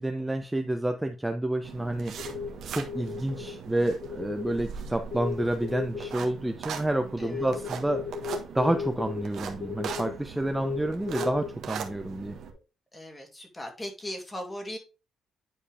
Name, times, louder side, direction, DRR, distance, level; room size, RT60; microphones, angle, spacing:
voice 1, 0.0-2.1 2.7-8.0 8.5-12.4, right 1 dB, 10° right, 5 dB, 0.7 m, -29 dB
sound 1, 1.6-12.5, right 7 dB, 70° right, 1.4 m, -40 dB
sound 2, 2.2-3.7 4.0-4.5 5.1-11.5 12.2-12.5, left 7 dB, 40° left, 4.1 m, -36 dB
voice 2, 12.9-14.8, left 1 dB, 15° left, 3 dB, 2.4 m, -38 dB
9.9 x 4.6 x 3.4 m, 0.32 s
cardioid pair, 90°, 0 cm